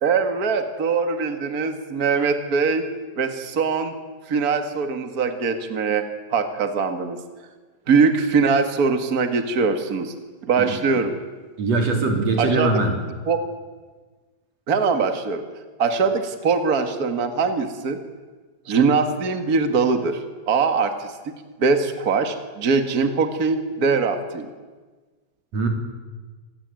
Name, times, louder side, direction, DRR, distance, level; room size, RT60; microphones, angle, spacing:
voice 1, 0.0-2.9 3.1-3.9 4.3-6.0 6.3-7.2 7.9-10.1 10.5-11.1 12.4-12.7 13.3-13.4 14.7-15.4 15.8-18.0 18.6-21.3 21.6-24.5, right 5 dB, 80° right, 7 dB, 0.8 m, -22 dB
voice 2, 11.6-13.0 25.5-25.7, right 3 dB, 40° right, 3 dB, 4.3 m, -21 dB
27.0 x 19.0 x 9.1 m, 1.4 s
omnidirectional pair, 5.1 m